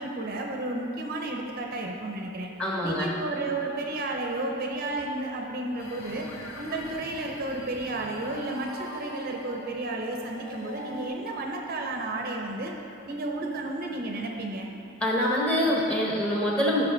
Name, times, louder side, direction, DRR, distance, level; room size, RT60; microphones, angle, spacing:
voice 1, 0.0-2.5 2.8-6.3 6.6-12.7 13.1-14.7, right 2 dB, 45° right, 1 dB, 0.7 m, -32 dB
voice 2, 2.6-3.1 15.0-16.9, equal, 5° left, -3 dB, 1.2 m, -25 dB
sound 1, 5.8-11.1, left 2 dB, 90° left, 1.0 m, -44 dB
12.0 x 5.9 x 3.9 m, 3.0 s
head